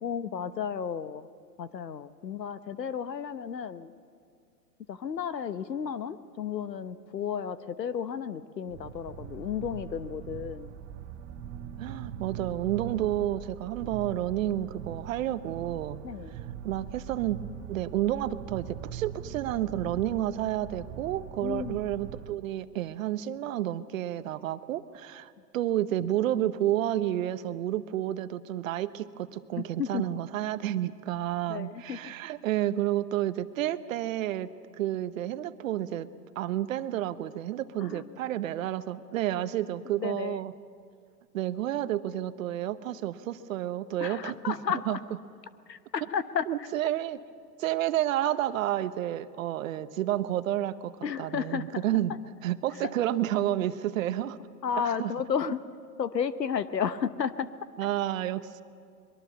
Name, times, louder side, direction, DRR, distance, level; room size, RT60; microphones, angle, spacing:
voice 1, 0.0-1.3 1.6-3.9 4.9-10.7 16.0-16.3 21.4-21.8 29.6-30.2 31.5-32.1 37.8-38.2 40.0-40.4 44.0-45.0 45.7-46.7 51.0-51.8 52.8-52.9 54.6-55.6 56.0-57.5, left 7 dB, 90° left, 14 dB, 1.1 m, -33 dB
sound 1, 8.7-22.3, right 8 dB, 30° right, 1.2 m, -42 dB
voice 2, 11.8-16.0 16.6-17.4 17.7-34.5 34.8-36.1 36.3-40.5 41.3-44.5 44.9-45.0 46.5-47.2 47.6-50.9 51.2-52.2 52.4-54.4 54.8-55.1 57.8-58.6, right 13 dB, 55° right, 13 dB, 1.0 m, -30 dB
23.0 x 22.0 x 7.1 m, 2.2 s
hypercardioid pair, 120°, 48 cm